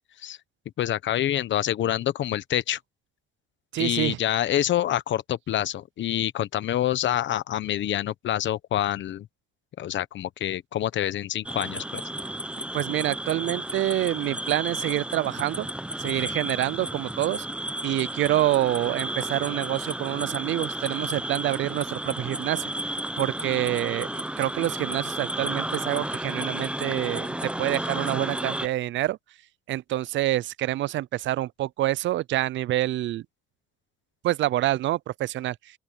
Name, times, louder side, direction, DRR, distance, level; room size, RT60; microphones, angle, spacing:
voice 1, 0.8-2.8 3.8-9.3 9.8-12.0, left 12 dB, 70° left, 1.2 m, -27 dB
voice 2, 3.7-4.2 12.7-15.7 16.0-17.5 17.8-22.7 23.2-29.2 29.7-33.2 34.2-35.6, right 14 dB, 70° right, 0.5 m, -27 dB
sound 1, 11.4-28.7, right 1 dB, 5° right, 1.0 m, -32 dB
open air
cardioid pair, 90°, 20 cm